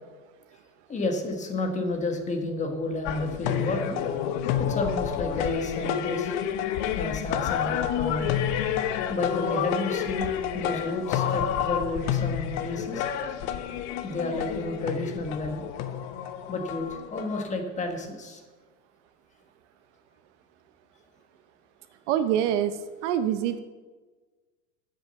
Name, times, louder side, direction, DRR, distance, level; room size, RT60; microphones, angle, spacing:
voice 1, 0.9-4.0 4.6-6.3 6.9-8.4 9.1-13.0 14.0-15.7 16.5-18.4, left 2 dB, 15° left, 5 dB, 1.3 m, -31 dB
sound 1, 3.0-17.5, left 9 dB, 45° left, 0.9 m, -29 dB
voice 2, 22.1-23.6, right 10 dB, 55° right, 11 dB, 0.8 m, -25 dB
9.9 x 6.4 x 6.9 m, 1.3 s
supercardioid pair, 140°, 42 cm